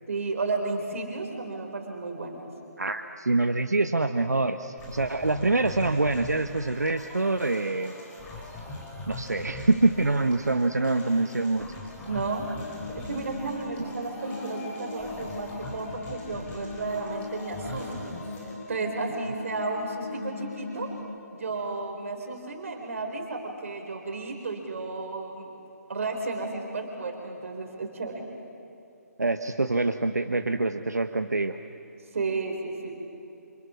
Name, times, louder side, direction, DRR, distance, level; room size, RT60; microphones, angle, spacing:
voice 1, 0.1-2.5 12.1-12.5 12.9-17.9 18.7-20.9 21.3-25.5 25.9-28.2 32.1-33.0, right 3 dB, 55° right, 3 dB, 4.0 m, -33 dB
voice 2, 2.8-7.9 9.1-11.7 29.2-31.6, right 2 dB, 80° right, 8 dB, 1.2 m, -25 dB
sound 1, 4.8-18.5, left 2 dB, 15° left, 5.0 m, -42 dB
sound 2, 12.5-21.0, left 3 dB, 55° left, 6.9 m, -40 dB
29.5 x 27.0 x 6.4 m, 2.7 s
figure-of-eight pair, 140°, 9 cm